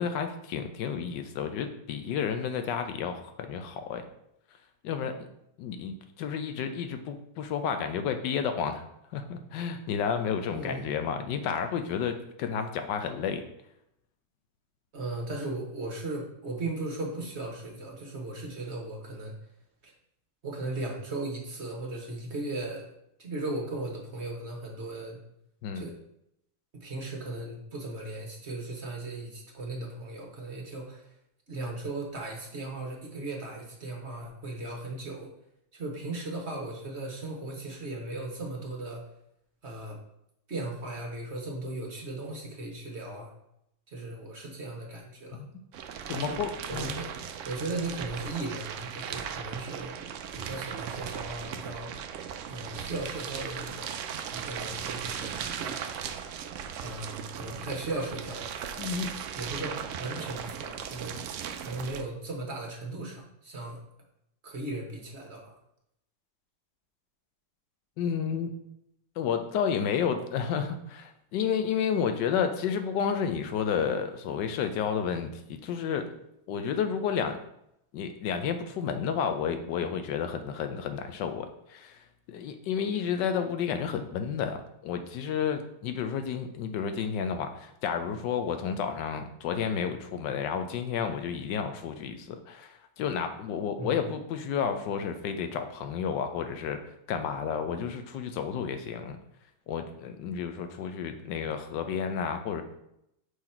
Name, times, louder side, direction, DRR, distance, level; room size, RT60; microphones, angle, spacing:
voice 1, 0.0-4.0 4.8-5.3 5.6-8.8 9.1-13.4 25.6-25.8 45.3-45.5 46.1-47.0 58.8-59.1 68.0-68.5 69.2-76.1 76.5-77.4 77.9-96.8 97.1-99.2 99.7-102.6, left 7 dB, 90° left, 7 dB, 1.3 m, -31 dB
voice 2, 10.5-10.9 14.9-19.3 19.8-19.9 20.4-22.9 23.2-25.2 25.7-25.9 26.7-31.1 31.5-35.3 35.7-39.0 39.6-40.0 40.5-43.3 43.9-45.4 46.1-46.4 46.7-47.1 47.4-49.9 50.3-51.9 52.5-53.9 54.3-55.8 56.7-58.6 59.3-61.2 61.6-63.8 64.4-65.5 93.8-94.0, right 2 dB, 45° right, 0 dB, 1.3 m, -37 dB
sound 1, 45.7-62.0, right 8 dB, 80° right, 0.6 m, -37 dB
5.9 x 4.0 x 4.3 m, 0.80 s
omnidirectional pair, 1.8 m